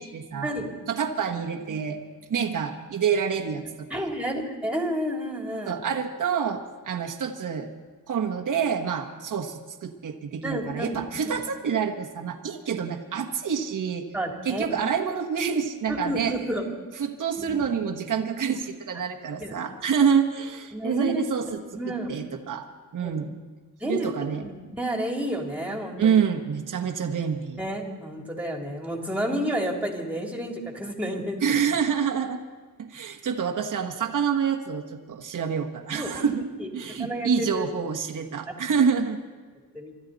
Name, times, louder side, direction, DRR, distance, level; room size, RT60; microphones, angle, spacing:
voice 1, 0.0-0.5 0.9-2.0 2.3-4.0 5.6-7.7 8.1-14.1 14.4-16.3 17.0-21.6 21.9-22.6 22.9-23.3 23.8-24.4 26.0-27.6 31.4-32.4 32.8-36.4 36.7-39.2, right 7 dB, 60° right, 3 dB, 1.5 m, -27 dB
voice 2, 3.9-5.8 10.4-11.3 14.1-14.7 15.9-16.7 17.4-17.6 19.3-19.9 20.7-21.2 21.7-22.2 23.0-23.1 23.8-24.1 24.4-26.2 27.6-31.4 35.9-37.7 39.7-39.9, equal, 5° right, 1 dB, 3.3 m, -31 dB
25.5 x 12.5 x 4.1 m, 1.4 s
cardioid pair, 95°, 35 cm